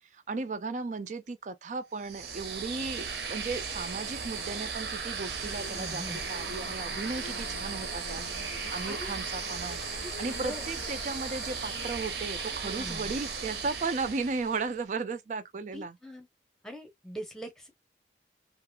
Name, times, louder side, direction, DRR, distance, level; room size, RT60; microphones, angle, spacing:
voice 1, 0.1-8.2 8.7-9.8 10.2-16.0, right 4 dB, 45° right, 0.4 m, -35 dB
sound 1, 2.0-14.8, right 5 dB, 70° right, 0.8 m, -36 dB
sound 2, 5.4-12.5, left 7 dB, 70° left, 0.4 m, -47 dB
voice 2, 5.7-6.2 8.9-9.1 10.0-10.6 12.6-13.1 15.7-16.3 16.6-17.7, equal, 5° left, 0.7 m, -42 dB
2.8 x 2.4 x 2.2 m
head